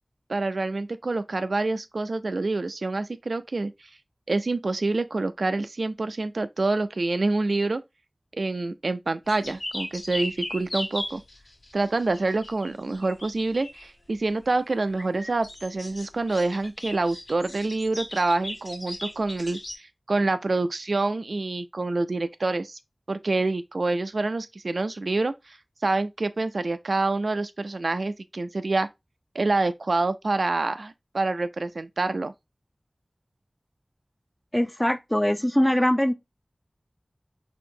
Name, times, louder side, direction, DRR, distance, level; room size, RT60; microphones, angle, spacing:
voice 1, 0.3-3.7 4.3-7.8 8.3-11.2 11.7-22.8 23.1-25.6 25.8-28.9 29.3-32.3, right 3 dB, 85° right, 0.3 m, -27 dB
sound 1, 9.3-13.9 14.9-19.8, left 1 dB, 90° left, 1.3 m, -37 dB
voice 2, 34.5-36.1, equal, 15° left, 0.3 m, -22 dB
4.4 x 2.8 x 2.6 m
wide cardioid pair, 60°, 0 cm